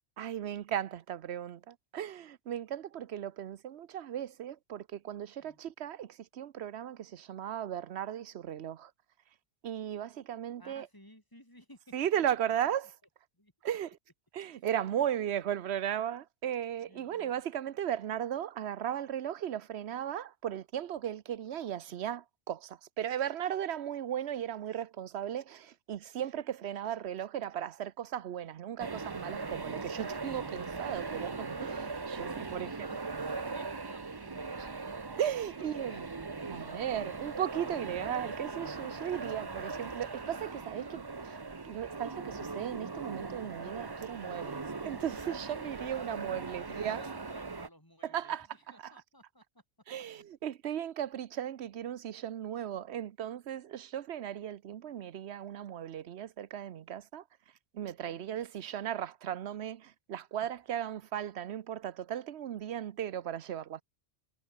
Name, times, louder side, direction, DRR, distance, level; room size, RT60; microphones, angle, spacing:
voice 1, 0.2-8.9 9.6-10.9 11.9-12.9 13.6-14.0 14.3-32.7 35.2-36.0 36.5-41.4 41.6-47.0 48.0-48.9 49.9-57.2 57.7-63.8, right 10 dB, 70° right, 1.0 m, -36 dB
voice 2, 10.6-11.9 13.3-13.5 16.9-17.4 32.2-34.8 35.6-36.8 46.4-49.6 58.1-58.4, equal, 20° left, 4.0 m, -57 dB
sound 1, 28.8-47.7, right 4 dB, 25° right, 0.7 m, -40 dB
omnidirectional pair, 1.2 m